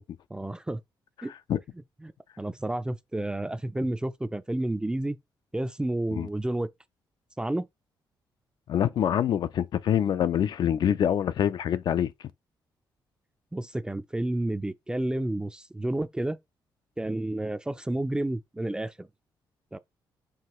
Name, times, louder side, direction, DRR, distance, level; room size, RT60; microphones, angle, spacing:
voice 1, 0.3-0.8 1.2-1.3 2.0-2.1 2.4-5.2 5.5-6.7 7.4-7.7 13.5-16.4 17.0-19.1 19.7-19.8, right 1 dB, 10° right, 0.4 m, -30 dB
voice 2, 8.7-12.1, left 9 dB, 65° left, 0.4 m, -25 dB
4.7 x 3.1 x 3.0 m
cardioid pair, 75°, 8 cm